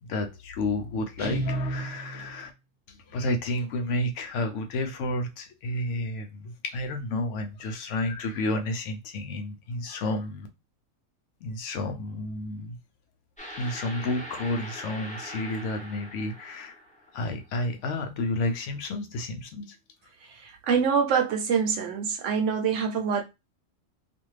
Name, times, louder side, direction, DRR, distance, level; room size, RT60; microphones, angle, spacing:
voice 1, 0.0-2.5 2.9-10.5 11.4-12.8 13.6-16.8 17.1-19.8, left 2 dB, 75° left, 0.9 m, -31 dB
Guitar, 1.2-2.4, right 2 dB, 10° right, 1.0 m, -32 dB
sound 1, 13.4-17.3, equal, 10° left, 0.6 m, -42 dB
voice 2, 20.4-23.2, right 6 dB, 75° right, 0.9 m, -25 dB
2.5 x 2.5 x 3.1 m
omnidirectional pair, 1.3 m